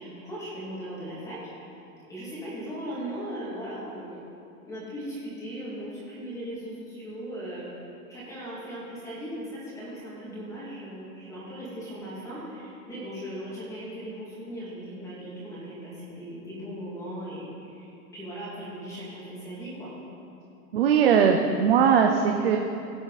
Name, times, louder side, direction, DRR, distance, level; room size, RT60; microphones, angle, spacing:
voice 1, 0.0-1.4 2.1-4.2 4.6-7.7 8.1-19.9, equal, 5° left, -8 dB, 2.6 m, -38 dB
voice 2, 20.7-22.6, right 7 dB, 40° right, 3 dB, 0.7 m, -20 dB
17.5 x 8.9 x 4.2 m, 2.8 s
supercardioid pair, 175°, 46 cm